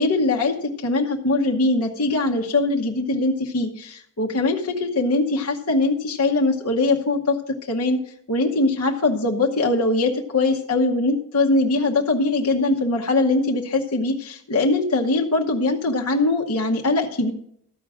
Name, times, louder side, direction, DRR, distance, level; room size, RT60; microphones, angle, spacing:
voice 1, 0.0-7.4 7.7-8.0 8.3-17.3, left 2 dB, 80° left, 1 dB, 1.1 m, -21 dB
13.5 x 4.9 x 7.3 m, 0.68 s
head